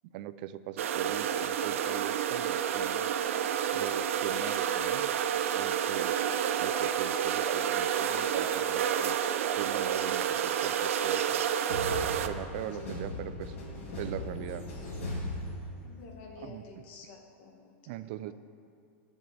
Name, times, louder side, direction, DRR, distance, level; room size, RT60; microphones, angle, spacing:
voice 1, 0.1-3.1 3.7-5.1 5.6-6.1 6.6-9.2 9.6-11.4 12.3-13.6 14.0-14.7 16.4-16.8 17.9-18.3, right 12 dB, 45° right, 13 dB, 0.4 m, -40 dB
sound 1, 0.8-12.3, right 9 dB, 85° right, 0.6 m, -29 dB
sound 2, 11.7-16.2, left 1 dB, 90° left, 3.2 m, -38 dB
voice 2, 15.8-17.7 18.3-18.4, left 4 dB, 50° left, 1 dB, 1.9 m, -50 dB
22.0 x 7.3 x 3.4 m, 2.5 s
supercardioid pair, 165°, 7 cm